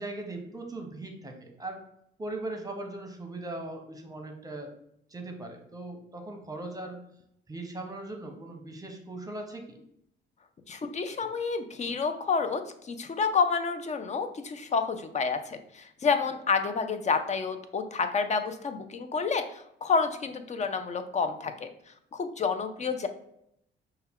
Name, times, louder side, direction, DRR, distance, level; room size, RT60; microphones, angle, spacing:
voice 1, 0.0-1.8 2.2-4.7 5.1-7.0 7.5-9.8 11.2-11.3, right 2 dB, 20° right, 4 dB, 0.9 m, -39 dB
voice 2, 10.7-21.7 22.1-23.1, left 5 dB, 35° left, 8 dB, 0.5 m, -29 dB
5.5 x 2.2 x 3.5 m, 0.74 s
cardioid pair, 90°, 20 cm